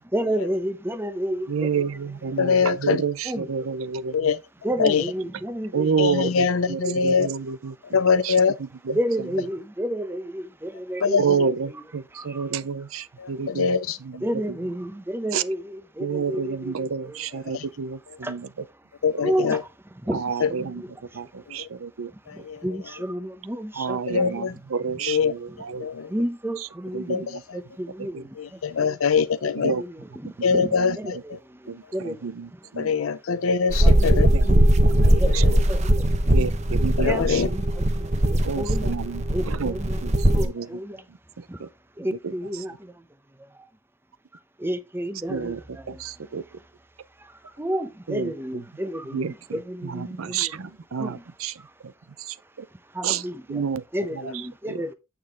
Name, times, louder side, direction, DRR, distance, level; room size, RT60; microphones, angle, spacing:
voice 1, 0.1-1.7 2.4-2.8 3.2-3.5 4.6-5.9 6.2-6.3 6.6-7.4 8.9-11.8 12.1-12.5 13.6-13.7 14.2-17.2 18.2-18.3 19.2-21.4 22.3-24.5 25.5-25.6 26.1-29.0 29.7-32.6 33.8-34.7 35.1-36.3 37.0-39.0 39.3-40.0 40.3-41.0 41.5-41.6 42.0-42.9 44.6-46.0 47.2-50.6 51.0-51.2 52.9-53.6 53.9-54.9, right 1 dB, 10° right, 0.7 m, -31 dB
voice 2, 1.5-4.3 5.7-9.0 11.2-14.3 15.3-15.4 16.0-18.5 20.1-20.8 21.1-22.1 23.7-25.9 26.6-26.7 26.9-27.4 28.0-28.2 29.5-29.8 30.2-30.3 30.8-31.2 31.7-32.9 34.3-35.4 36.3-37.4 38.4-40.7 41.4-41.7 42.2-42.3 45.3-45.6 45.9-46.4 48.1-48.3 49.1-51.5 51.8-51.9 52.2-52.7 53.0-53.2 53.5-53.8 54.6-54.8, right 6 dB, 90° right, 0.6 m, -30 dB
voice 3, 2.4-3.0 4.1-4.4 4.8-5.0 6.0-7.3 7.9-8.5 11.0-11.2 13.5-14.0 19.0-19.6 22.5-22.6 24.1-24.5 25.1-25.3 25.8-26.1 27.1-27.2 28.6-29.7 30.4-30.9 32.8-34.3 37.0-37.5, left 5 dB, 80° left, 0.5 m, -22 dB
sound 1, 33.7-40.4, right 1 dB, 35° right, 1.1 m, -19 dB
8.7 x 5.8 x 3.5 m
head